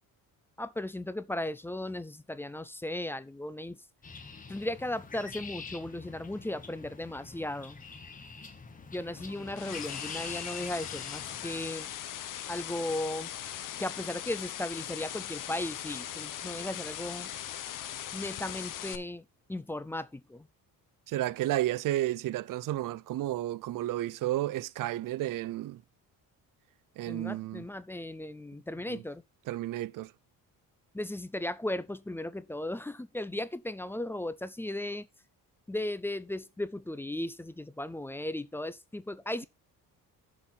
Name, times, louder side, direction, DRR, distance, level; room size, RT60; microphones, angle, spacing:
voice 1, 0.6-3.8 4.5-7.8 8.9-11.9 12.5-13.3 13.8-17.3 18.1-20.5 27.1-29.2 30.9-35.1 35.7-39.4, left 1 dB, 5° left, 0.4 m, -36 dB
sound 1, 4.0-11.7, left 4 dB, 25° left, 1.3 m, -46 dB
sound 2, 9.2-19.0, left 11 dB, 60° left, 1.0 m, -40 dB
voice 2, 21.1-25.8 27.0-27.6 28.9-29.0 29.5-30.1, right 14 dB, 60° right, 0.5 m, -32 dB
7.1 x 6.1 x 5.7 m
cardioid pair, 180°, 36 cm